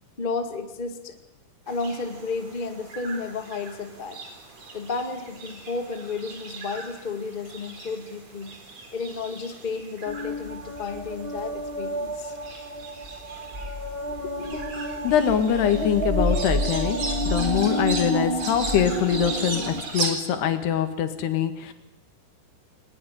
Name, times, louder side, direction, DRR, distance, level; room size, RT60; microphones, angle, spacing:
voice 1, 0.2-1.2 1.7-4.2 4.7-8.5 8.9-12.3, left 4 dB, 25° left, 6 dB, 1.2 m, -32 dB
sound 1, 1.7-20.1, right 3 dB, 40° right, 4.9 m, -38 dB
sound 2, 10.1-19.8, equal, 20° right, 1.6 m, -29 dB
voice 2, 15.0-17.0 17.3-21.7, left 8 dB, 85° left, 8 dB, 4.1 m, -24 dB
22.0 x 20.0 x 10.0 m, 0.88 s
omnidirectional pair, 4.6 m